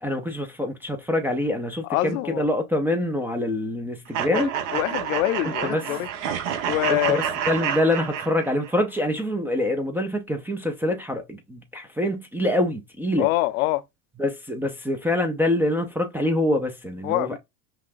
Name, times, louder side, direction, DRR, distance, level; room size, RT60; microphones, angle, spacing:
voice 1, 0.0-4.5 5.7-5.8 6.9-7.2 7.5-13.3 14.2-17.4, left 1 dB, 5° right, 0.4 m, -25 dB
voice 2, 1.9-2.5 4.3-6.1 6.6-7.2 13.2-13.8 17.0-17.4, left 17 dB, 65° left, 0.6 m, -25 dB
sound 1, 4.1-8.7, right 8 dB, 55° right, 1.1 m, -29 dB
5.7 x 2.1 x 2.5 m
hypercardioid pair, 105°, 46 cm